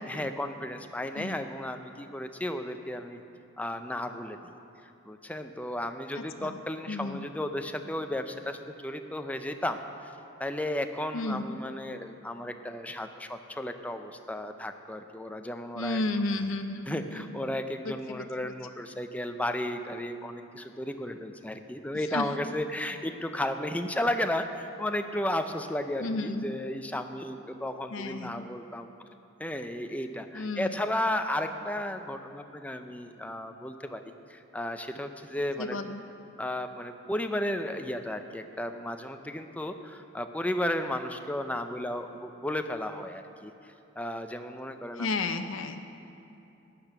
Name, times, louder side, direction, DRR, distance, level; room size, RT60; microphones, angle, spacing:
voice 1, 0.1-3.2 3.6-4.4 5.1-10.1 10.4-16.0 16.9-28.9 29.4-34.0 34.3-35.8 36.4-43.5 44.0-45.1, left 1 dB, 5° left, 7 dB, 0.5 m, -34 dB
voice 2, 6.2-6.6 6.9-7.3 11.1-11.5 15.7-17.4 17.8-18.5 22.1-22.3 26.0-26.4 27.9-28.4 30.3-30.8 35.6-36.0 45.0-45.8, left 2 dB, 85° left, 6 dB, 0.7 m, -33 dB
15.5 x 10.0 x 6.0 m, 2.8 s
head